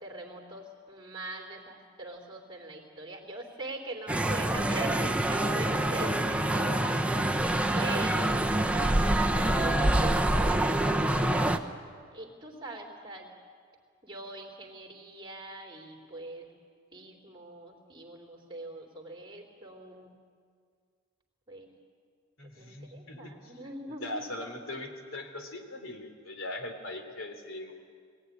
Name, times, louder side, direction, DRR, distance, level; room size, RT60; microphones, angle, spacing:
voice 1, 0.0-8.5 8.9-11.6 12.1-13.3 14.0-16.5 16.9-20.2 21.5-21.7 22.4-24.2, right 2 dB, 25° right, 0 dB, 3.4 m, -43 dB
sound 1, 4.1-11.6, right 1 dB, 5° right, 0.9 m, -26 dB
voice 2, 22.4-23.4 24.0-27.7, left 1 dB, 70° left, 5 dB, 3.1 m, -40 dB
22.0 x 17.5 x 9.9 m, 2.1 s
head